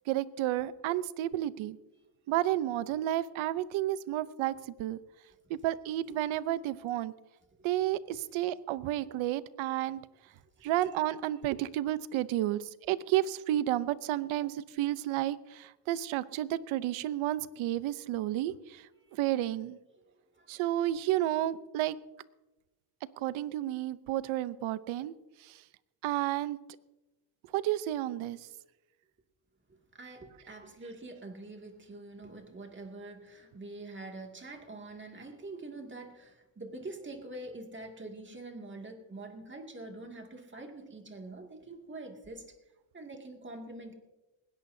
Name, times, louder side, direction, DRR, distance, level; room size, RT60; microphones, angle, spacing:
voice 1, 0.1-1.8 2.3-5.0 5.5-7.1 7.6-10.0 10.6-19.8 20.5-22.0 23.2-25.1 25.4-25.6 26.0-26.6 27.5-28.5, right 13 dB, 80° right, 16 dB, 0.8 m, -31 dB
voice 2, 29.9-42.4 42.9-43.9, right 2 dB, 25° right, 3 dB, 2.3 m, -45 dB
20.5 x 17.5 x 2.7 m, 1.1 s
cardioid pair, 105°, 47 cm